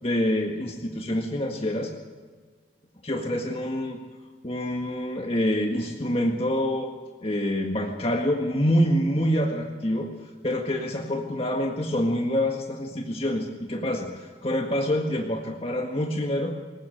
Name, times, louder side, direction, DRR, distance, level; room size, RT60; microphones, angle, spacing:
voice 1, 0.0-1.9 3.0-4.0 4.4-6.9 7.2-10.1 10.4-16.6, equal, 35° left, 1 dB, 1.8 m, -26 dB
21.0 x 19.0 x 7.8 m, 1.5 s
head